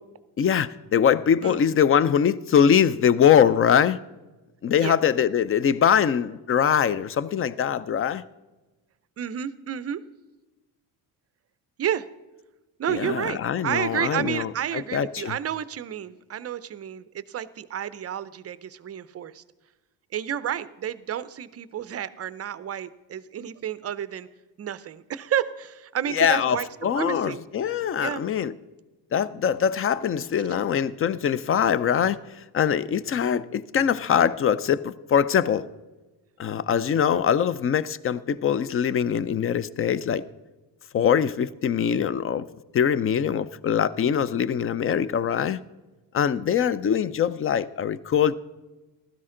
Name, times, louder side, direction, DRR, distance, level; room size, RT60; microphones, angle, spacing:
voice 1, 0.4-4.0 4.6-8.2 12.9-15.4 26.1-28.5 29.1-32.2 32.5-35.7 36.4-40.2 40.9-42.5 42.7-45.6 46.1-48.4, left 8 dB, 30° left, 0.4 m, -23 dB
voice 2, 9.2-10.0 11.8-12.1 12.8-19.4 20.1-24.3 24.6-26.7 26.9-27.4 28.0-28.3, right 9 dB, 35° right, 0.5 m, -31 dB
15.5 x 12.5 x 3.8 m
cardioid pair, 105°, 45 cm